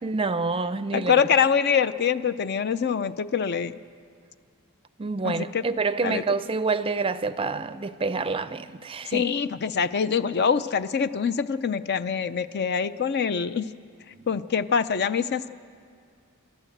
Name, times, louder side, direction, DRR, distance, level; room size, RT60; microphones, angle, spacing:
voice 1, 0.0-1.2 5.0-9.3 14.1-14.3, right 4 dB, 25° right, 0.5 m, -27 dB
voice 2, 0.9-3.7 5.2-5.6 6.0-6.2 9.1-13.7 14.3-15.5, left 6 dB, 50° left, 0.5 m, -24 dB
28.0 x 12.0 x 7.9 m
head